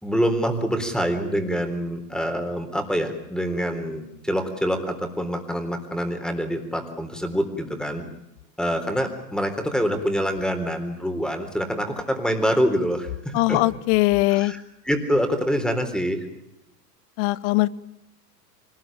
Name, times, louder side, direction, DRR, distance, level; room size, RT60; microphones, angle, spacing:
voice 1, 0.0-8.0 8.6-13.6 14.3-16.2, equal, ahead, 6 dB, 3.8 m, -25 dB
voice 2, 13.3-14.5 17.2-17.7, left 20 dB, 50° left, 21 dB, 0.9 m, -20 dB
25.0 x 19.5 x 9.0 m, 0.89 s
hypercardioid pair, 95°, 48 cm